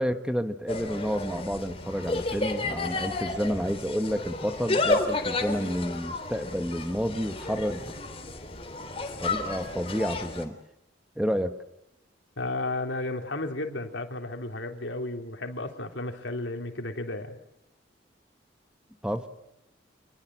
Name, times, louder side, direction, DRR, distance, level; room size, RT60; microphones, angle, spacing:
voice 1, 0.0-7.9 9.2-10.6 11.2-11.6 19.0-19.3, equal, 5° right, 8 dB, 1.3 m, -30 dB
Insect, 0.7-10.5, left 2 dB, 30° left, 3.3 m, -32 dB
voice 2, 12.4-17.4, left 2 dB, 85° left, 4 dB, 3.5 m, -33 dB
27.5 x 21.5 x 7.7 m, 0.84 s
head